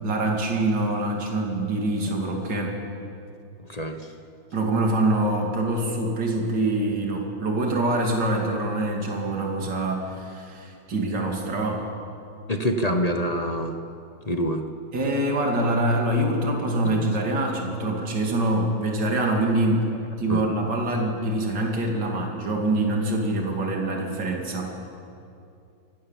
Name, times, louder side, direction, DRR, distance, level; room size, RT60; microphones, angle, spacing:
voice 1, 0.0-2.8 4.5-11.9 14.9-19.9 20.2-24.7, right 1 dB, 60° right, 0 dB, 3.2 m, -25 dB
voice 2, 12.5-13.8 14.2-14.7 16.8-17.1 20.3-20.4, equal, 25° left, 5 dB, 1.0 m, -26 dB
25.5 x 17.5 x 7.4 m, 2.6 s
omnidirectional pair, 2.2 m